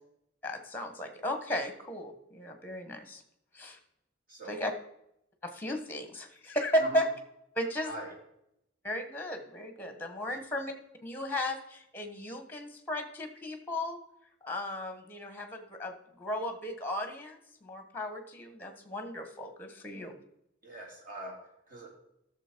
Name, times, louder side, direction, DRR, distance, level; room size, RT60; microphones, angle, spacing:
voice 1, 0.4-3.2 3.5-3.8 4.5-4.7 5.4-7.1 7.5-8.0 8.8-10.7 11.0-14.0 14.4-20.2, left 1 dB, 10° left, 7 dB, 1.2 m, -35 dB
voice 2, 4.3-4.6 6.8-7.0 7.8-8.1 20.6-21.3 21.7-21.9, right 2 dB, 45° right, -1 dB, 2.9 m, -42 dB
13.0 x 6.7 x 4.5 m, 0.80 s
head